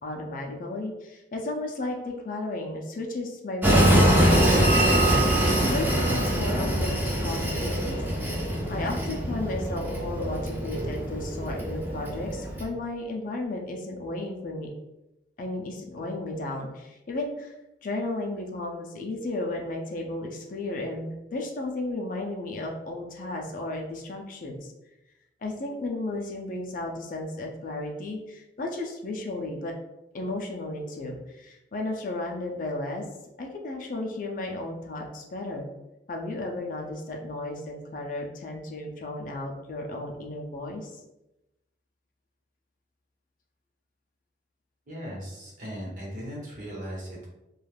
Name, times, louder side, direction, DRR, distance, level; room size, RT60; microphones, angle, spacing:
voice 1, 0.0-14.7 15.4-17.5 17.8-24.7 25.4-29.7 30.1-33.0 33.4-35.7 36.1-40.9, left 2 dB, 50° left, 1 dB, 0.4 m, -34 dB
Train, 3.6-12.6, right 1 dB, 10° right, 0.5 m, -23 dB
sound 1, 4.1-12.4, right 1 dB, 80° right, 0.9 m, -39 dB
voice 2, 44.9-47.3, equal, 45° right, -4 dB, 0.9 m, -38 dB
2.4 x 2.3 x 3.2 m, 0.94 s
head